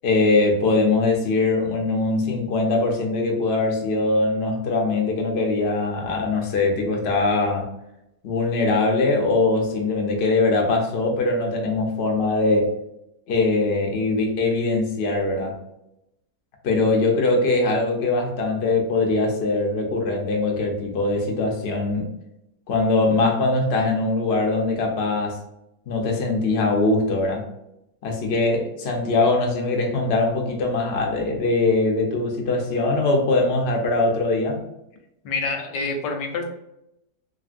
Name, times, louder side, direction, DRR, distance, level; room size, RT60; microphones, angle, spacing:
voice 1, 0.0-7.7 8.2-12.7 13.3-15.6 16.6-22.1 22.7-25.4 25.9-27.5 28.0-34.6, left 3 dB, 65° left, 1 dB, 0.6 m, -22 dB
voice 2, 35.2-36.4, left 3 dB, 85° left, 4 dB, 1.2 m, -27 dB
3.1 x 2.6 x 2.5 m, 0.84 s
omnidirectional pair, 1.9 m